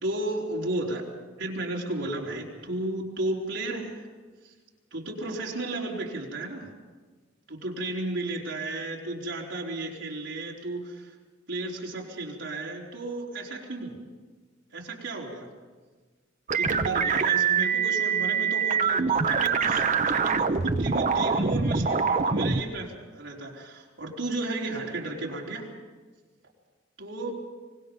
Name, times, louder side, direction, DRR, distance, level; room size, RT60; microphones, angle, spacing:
voice 1, 0.0-1.1 1.4-4.1 4.4-4.5 4.9-6.7 7.5-11.1 11.5-13.9 14.7-15.5 16.5-25.7 27.0-27.3, right 2 dB, 70° right, -2 dB, 4.1 m, -33 dB
sound 1, 16.5-22.6, right 5 dB, 40° right, 0.8 m, -24 dB
25.0 x 20.5 x 5.4 m, 1.4 s
head